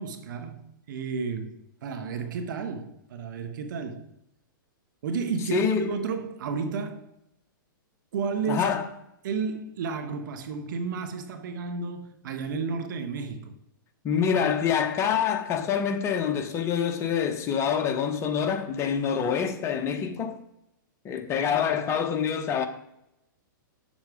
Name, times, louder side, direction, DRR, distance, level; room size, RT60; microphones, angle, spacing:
voice 1, 0.0-4.0 5.0-7.1 8.1-8.7 9.2-13.5, right 5 dB, 65° right, 1.4 m, -32 dB
voice 2, 5.5-5.9 8.5-8.9 14.0-20.4 21.0-22.7, left 7 dB, 25° left, 1.0 m, -26 dB
9.3 x 7.4 x 5.0 m
hypercardioid pair, 140°, 11 cm